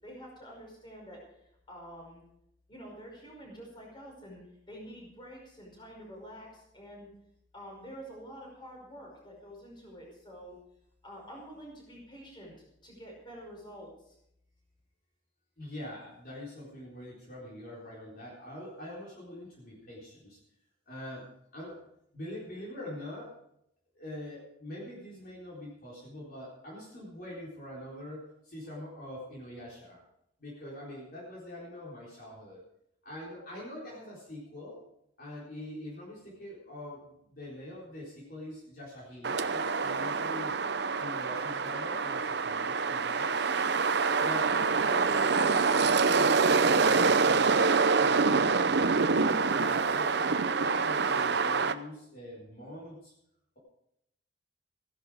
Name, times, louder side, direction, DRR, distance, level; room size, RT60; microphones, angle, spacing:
voice 1, 0.0-1.2 1.7-2.2 2.7-4.4 4.7-7.1 7.5-10.5 11.0-12.6 12.8-13.9, equal, 25° left, -1 dB, 5.3 m, -47 dB
voice 2, 15.6-20.4 20.9-21.3 21.5-21.8 22.1-23.4 24.0-30.0 30.4-32.6 33.0-34.8 35.2-40.5 41.0-43.5 44.2-49.1 49.5-53.1, left 1 dB, 50° left, -5 dB, 4.1 m, -44 dB
sound 1, 39.2-51.7, right 4 dB, 60° right, 0.7 m, -26 dB
15.5 x 11.5 x 4.9 m, 0.77 s
head